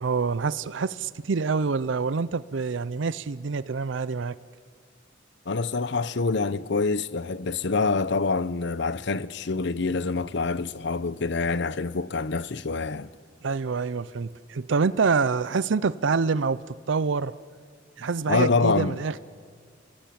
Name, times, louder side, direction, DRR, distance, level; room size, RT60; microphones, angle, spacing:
voice 1, 0.0-4.4 13.4-17.3 18.0-19.2, right 4 dB, 70° right, 0.5 m, -26 dB
voice 2, 5.5-13.1 18.3-19.0, left 4 dB, 60° left, 0.7 m, -26 dB
29.0 x 18.5 x 8.6 m
head